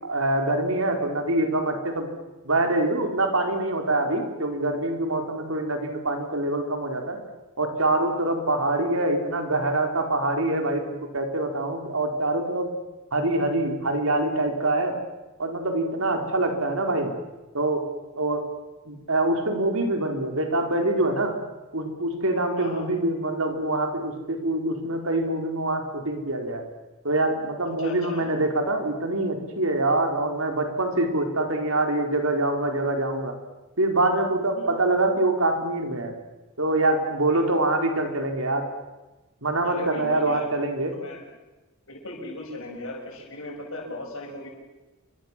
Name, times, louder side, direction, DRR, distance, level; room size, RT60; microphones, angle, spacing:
voice 1, 0.0-2.1 2.4-7.2 7.6-12.7 13.1-14.9 15.4-17.1 17.5-17.8 18.1-18.4 18.9-21.3 21.7-26.6 27.0-33.3 33.8-36.1 36.6-38.6 39.4-40.9, right 2 dB, 70° right, 4 dB, 4.6 m, -25 dB
voice 2, 27.8-28.3 34.6-34.7 37.3-37.5 39.6-40.5 41.0-41.2 41.9-44.5, left 2 dB, 65° left, 1 dB, 7.4 m, -37 dB
28.5 x 24.0 x 7.6 m, 1.1 s
head